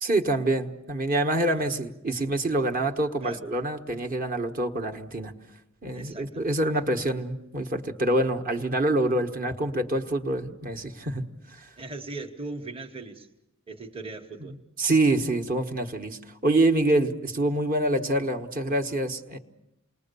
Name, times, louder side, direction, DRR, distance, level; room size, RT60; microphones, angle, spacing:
voice 1, 0.0-5.3 5.8-11.2 11.5-11.7 14.4-19.4, right 2 dB, 40° right, 4 dB, 1.4 m, -26 dB
voice 2, 1.5-1.8 3.2-3.4 5.9-6.5 11.8-13.3 13.7-14.6, right 3 dB, 25° right, 3 dB, 1.3 m, -39 dB
28.5 x 21.0 x 6.9 m, 0.91 s
head